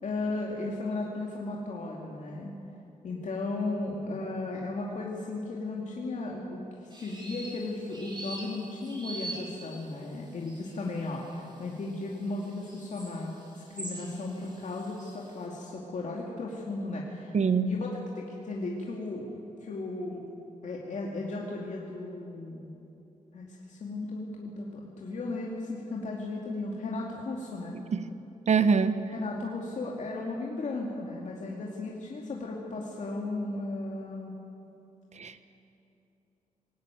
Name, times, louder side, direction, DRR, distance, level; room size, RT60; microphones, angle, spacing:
voice 1, 0.0-2.5 3.0-13.3 13.7-17.3 17.6-19.3 19.6-20.2 20.6-22.7 23.3-27.8 29.1-34.3, left 2 dB, 60° left, -2 dB, 2.4 m, -35 dB
sound 1, 6.9-15.3, right 2 dB, 35° right, 5.3 m, -44 dB
voice 2, 17.3-17.7 27.7-28.1 28.5-28.9 35.2-35.5, right 5 dB, 55° right, 11 dB, 1.1 m, -24 dB
21.0 x 17.5 x 9.2 m, 2.9 s
wide cardioid pair, 130°, 14 cm